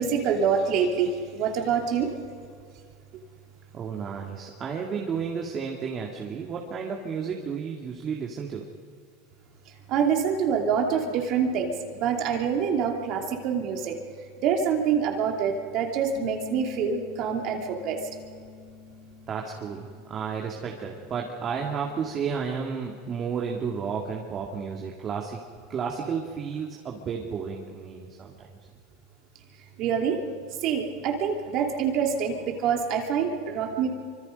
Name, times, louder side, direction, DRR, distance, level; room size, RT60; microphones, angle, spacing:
voice 1, 0.0-2.1 9.9-14.0 14.4-18.0 29.8-30.2 30.6-33.9, right 7 dB, 50° right, 2 dB, 2.8 m, -26 dB
voice 2, 3.7-8.7 19.3-25.4 25.7-28.6, right 6 dB, 30° right, 0 dB, 2.1 m, -32 dB
Bass guitar, 16.2-22.4, left 12 dB, 65° left, 3.0 m, -47 dB
25.0 x 25.0 x 5.3 m, 2.3 s
supercardioid pair, 130°, 0 cm